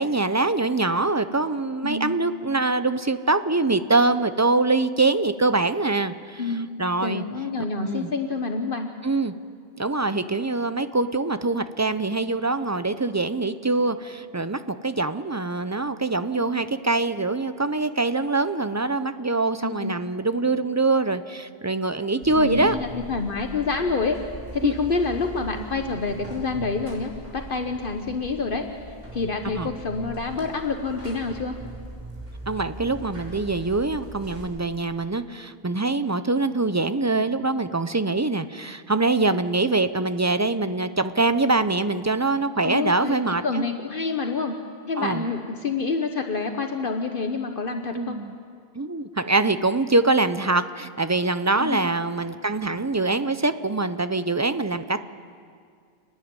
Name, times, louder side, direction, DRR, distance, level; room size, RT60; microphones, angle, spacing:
voice 1, 0.0-6.4 6.8-7.2 7.9-8.1 9.0-9.3 9.8-22.8 24.6-24.7 29.5-29.7 32.5-43.6 45.0-45.2 47.9-48.3 48.8-55.0, right 3 dB, 25° right, 11 dB, 0.3 m, -24 dB
voice 2, 1.8-2.2 6.4-6.7 7.0-8.9 19.6-20.0 22.3-24.2 24.5-28.7 29.1-31.5 42.6-43.2 43.4-44.5 44.9-48.2 51.5-51.8, left 4 dB, 60° left, 5 dB, 1.2 m, -27 dB
Buzz, 22.2-34.4, right 1 dB, 45° right, 4.4 m, -40 dB
29.5 x 9.8 x 9.6 m, 2.2 s
omnidirectional pair, 1.1 m